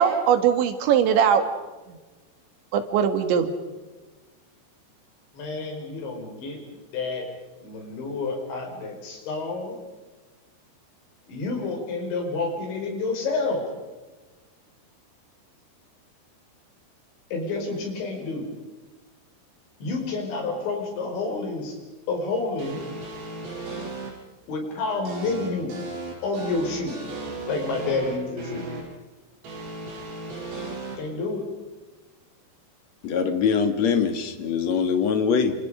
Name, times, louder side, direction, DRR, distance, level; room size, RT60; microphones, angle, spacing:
voice 1, 0.0-1.4 1.9-2.0 2.7-3.5, right 8 dB, 90° right, 7 dB, 4.3 m, -20 dB
voice 2, 5.3-6.6 6.9-7.3 7.6-9.8 11.3-13.7 17.3-18.5 19.8-21.8 22.1-22.8 24.5-25.8 26.2-27.0 27.5-28.7 31.0-31.5, left 3 dB, 85° left, 2 dB, 7.5 m, -29 dB
sound 1, 22.6-24.1 25.1-28.8 29.4-31.0, right 3 dB, 75° right, 7.6 m, -36 dB
voice 3, 33.0-35.5, left 6 dB, 50° left, 7 dB, 2.5 m, -23 dB
28.0 x 27.5 x 5.1 m, 1.2 s
omnidirectional pair, 5.1 m